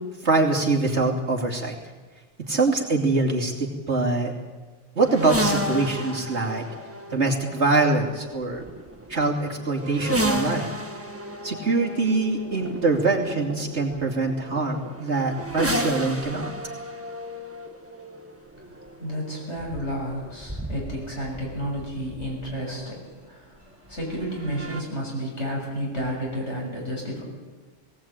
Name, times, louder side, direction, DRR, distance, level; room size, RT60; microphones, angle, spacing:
voice 1, 0.2-1.8 2.5-4.3 4.9-6.6 7.1-8.6 9.1-10.7 11.4-16.5, right 3 dB, 60° right, 0 dB, 3.1 m, -24 dB
sound 1, 5.0-22.8 23.9-24.8, right 1 dB, 10° right, 1.5 m, -33 dB
voice 2, 18.6-27.2, equal, 60° left, -2 dB, 7.2 m, -31 dB
19.5 x 18.0 x 9.0 m, 1.3 s
omnidirectional pair, 1.3 m